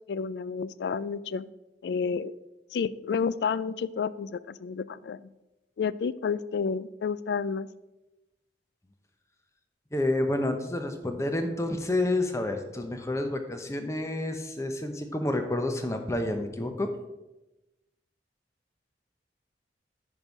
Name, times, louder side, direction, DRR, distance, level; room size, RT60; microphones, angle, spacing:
voice 1, 0.1-1.5 1.8-2.3 2.7-5.2 5.8-7.7, left 6 dB, 70° left, 18 dB, 0.3 m, -30 dB
voice 2, 9.9-16.9, left 1 dB, 15° left, 6 dB, 0.8 m, -29 dB
9.4 x 5.4 x 4.7 m, 1.0 s
head